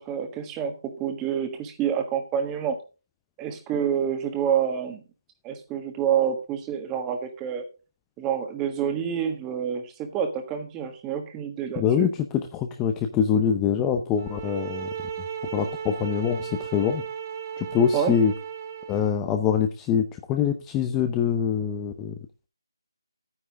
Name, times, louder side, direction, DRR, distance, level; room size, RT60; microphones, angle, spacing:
voice 1, 0.0-2.8 3.4-5.0 5.4-7.6 8.2-12.1 17.9-18.1, right 8 dB, 15° right, 6 dB, 1.4 m, -28 dB
voice 2, 11.8-14.9 15.5-17.0 17.6-18.3 18.9-22.1, left 7 dB, 10° left, 6 dB, 0.6 m, -24 dB
sound 1, 14.2-19.1, right 8 dB, 30° right, 1.4 m, -35 dB
11.0 x 9.7 x 3.7 m, 0.33 s
figure-of-eight pair, 160°, 3 cm